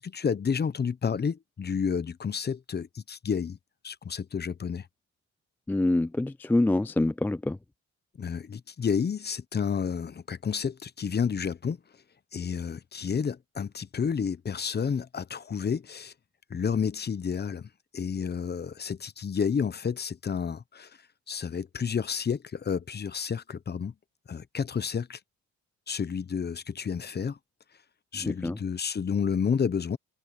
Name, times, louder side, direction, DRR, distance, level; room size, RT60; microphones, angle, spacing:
voice 1, 0.0-3.6 3.8-4.9 8.2-11.8 12.3-16.1 16.5-20.9 21.3-23.9 24.3-25.2 25.9-27.4 28.1-30.0, left 6 dB, 35° left, 1.0 m, -30 dB
voice 2, 5.7-7.6 28.2-28.6, left 2 dB, 5° left, 0.3 m, -26 dB
cardioid pair, 90°, 30 cm